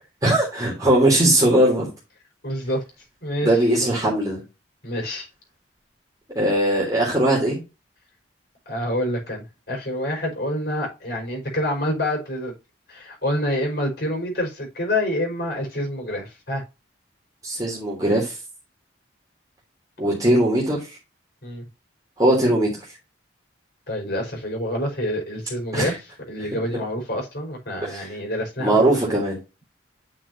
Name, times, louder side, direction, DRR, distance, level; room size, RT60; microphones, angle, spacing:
voice 1, 0.2-1.9 3.4-4.4 6.3-7.6 17.4-18.3 20.0-20.8 22.2-22.7 25.7-25.9 27.8-28.1 28.6-29.3, right 1 dB, 20° right, 3.3 m, -19 dB
voice 2, 2.4-2.8 3.2-3.9 4.8-5.3 8.7-12.5 12.9-16.6 21.4-21.7 23.9-26.0 26.3-29.0, left 1 dB, 55° left, 5.3 m, -27 dB
9.4 x 6.2 x 2.7 m
head